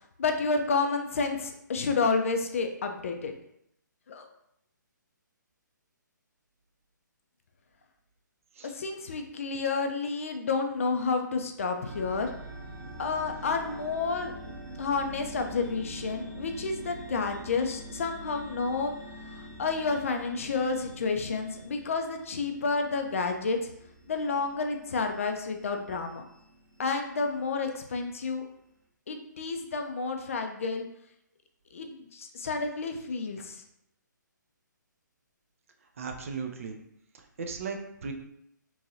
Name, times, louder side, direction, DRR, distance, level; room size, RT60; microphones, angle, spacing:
voice 1, 0.2-3.3 4.1-4.3 8.7-12.3 13.0-14.3 14.8-18.9 19.3-23.6 24.1-26.2 26.8-28.4 29.1-30.9 31.7-33.6, left 4 dB, 45° left, 5 dB, 0.3 m, -30 dB
sound 1, 11.8-27.9, right 1 dB, 90° right, 1.0 m, -45 dB
voice 2, 36.0-36.8 37.1-38.1, right 5 dB, 45° right, 4 dB, 0.4 m, -37 dB
3.0 x 2.6 x 2.6 m, 0.75 s
figure-of-eight pair, 135°, 10 cm